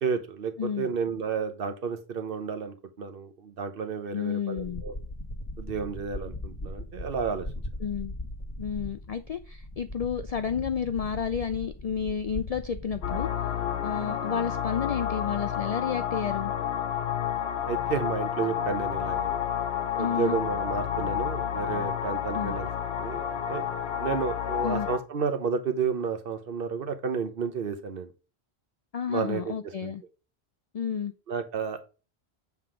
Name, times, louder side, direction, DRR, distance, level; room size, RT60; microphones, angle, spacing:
voice 1, 0.0-5.0 5.6-7.5 17.7-19.3 20.0-22.7 23.0-23.7 24.0-28.1 29.1-29.9 31.3-31.8, right 6 dB, 65° right, 8 dB, 1.1 m, -31 dB
voice 2, 4.1-4.8 7.8-8.1 8.6-13.3 13.8-16.5 20.0-20.4 22.3-22.6 24.6-24.9 28.9-30.0 30.7-31.1, left 7 dB, 55° left, 9 dB, 0.4 m, -31 dB
sound 1, 4.6-13.2, left 1 dB, 20° left, 1.3 m, -39 dB
sound 2, 13.0-25.0, left 9 dB, 80° left, 1.1 m, -30 dB
7.7 x 3.6 x 4.9 m, 0.34 s
omnidirectional pair, 1.0 m